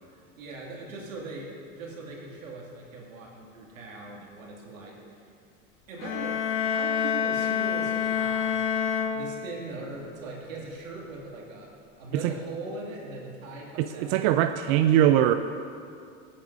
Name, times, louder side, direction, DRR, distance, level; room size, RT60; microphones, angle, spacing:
voice 1, 0.0-5.2 5.9-8.6 9.1-11.7 12.0-14.9, right 3 dB, 85° right, -3 dB, 2.6 m, -40 dB
sound 1, 6.0-9.8, left 8 dB, 60° left, 1.1 m, -28 dB
voice 2, 13.8-15.3, right 11 dB, 55° right, 9 dB, 0.5 m, -22 dB
16.5 x 8.7 x 2.7 m, 2.4 s
hypercardioid pair, 100°, 39 cm